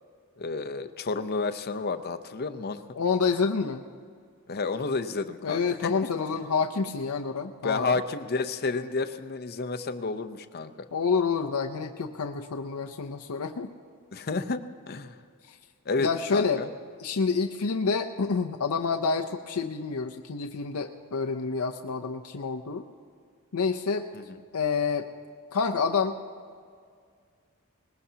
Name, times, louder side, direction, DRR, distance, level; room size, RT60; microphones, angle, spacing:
voice 1, 0.4-2.8 4.5-5.9 7.6-10.7 14.1-15.2 15.9-16.7 24.1-24.2, left 4 dB, 45° left, 9 dB, 0.7 m, -30 dB
voice 2, 3.0-3.8 5.4-7.9 10.9-13.7 15.5-15.6 16.0-16.6 17.0-22.8 23.5-24.0 24.5-25.1 25.5-26.2, left 5 dB, 85° left, 4 dB, 0.6 m, -28 dB
21.0 x 20.0 x 2.8 m, 2.1 s
head